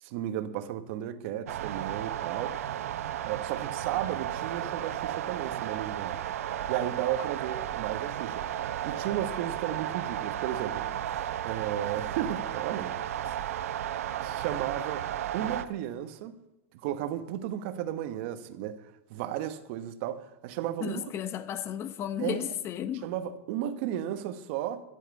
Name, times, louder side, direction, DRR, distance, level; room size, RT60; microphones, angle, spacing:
voice 1, 0.0-2.5 3.2-6.2 6.7-8.4 8.8-10.8 11.4-12.9 13.2-13.8 14.2-15.0 15.3-16.4 16.8-18.8 19.1-21.1 22.2-22.6 23.0-24.8, right 11 dB, 55° right, 1.1 m, -34 dB
sound 1, 1.5-15.7, right 11 dB, 80° right, 0.8 m, -34 dB
voice 2, 20.8-23.1, left 10 dB, 35° left, 0.8 m, -34 dB
12.5 x 7.7 x 8.4 m
supercardioid pair, 130°, 8 cm